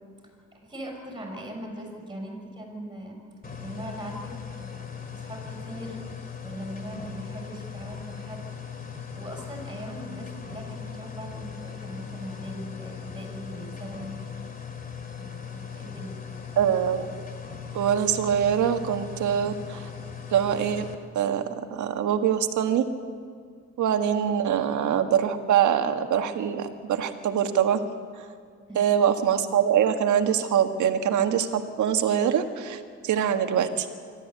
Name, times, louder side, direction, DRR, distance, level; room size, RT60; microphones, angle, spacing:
voice 1, 0.2-3.2 3.6-6.0 6.4-8.5 8.9-14.1 15.1-16.2 28.7-28.8, right 1 dB, 15° right, 2 dB, 6.5 m, -40 dB
sound 1, 3.4-20.9, left 7 dB, 30° left, 2.6 m, -39 dB
voice 2, 16.6-17.1 17.7-19.9 20.3-20.9 21.1-22.9 23.8-27.8 28.7-33.9, right 9 dB, 75° right, 7 dB, 1.6 m, -24 dB
25.0 x 13.0 x 8.5 m, 2.2 s
cardioid pair, 90°, 30 cm